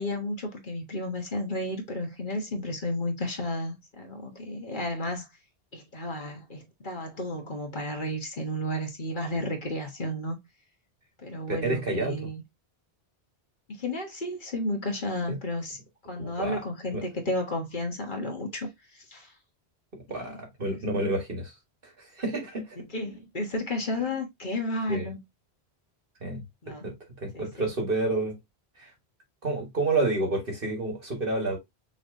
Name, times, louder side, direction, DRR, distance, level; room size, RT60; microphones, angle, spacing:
voice 1, 0.0-5.3 5.7-10.4 11.2-12.4 13.7-15.8 16.1-19.3 20.1-20.4 20.7-20.8 22.9-25.2 26.6-26.9 27.3-27.7, left 1 dB, 50° left, 1.5 m, -32 dB
voice 2, 11.5-12.2 15.3-15.4 16.2-16.6 16.9-17.0 19.9-21.5 21.8-22.8 24.9-25.1 26.2-26.9 27.2-28.4 28.8-28.9 29.4-31.6, right 2 dB, 55° right, 1.9 m, -29 dB
6.0 x 3.2 x 2.6 m
omnidirectional pair, 1.1 m